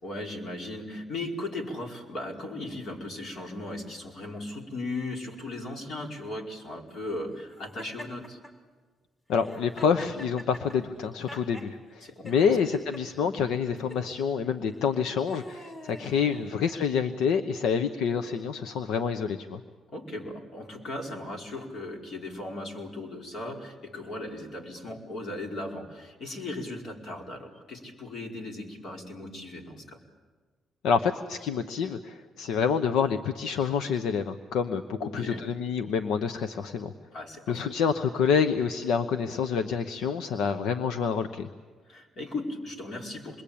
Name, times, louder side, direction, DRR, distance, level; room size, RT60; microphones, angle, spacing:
voice 1, 0.0-8.4 12.0-12.8 13.2-13.3 16.1-16.5 19.9-30.0 35.0-35.4 37.1-37.7 41.9-43.4, left 2 dB, 60° left, 1 dB, 4.8 m, -37 dB
Laughter, 7.8-8.5 9.3-11.7 12.2-13.0 13.8-14.0 14.8-17.0, left 1 dB, 25° left, 4.4 m, -45 dB
voice 2, 9.3-19.6 30.8-36.9 37.5-41.5, left 6 dB, 85° left, 9 dB, 1.0 m, -27 dB
27.0 x 22.5 x 8.7 m, 1.4 s
cardioid pair, 90°, 0 cm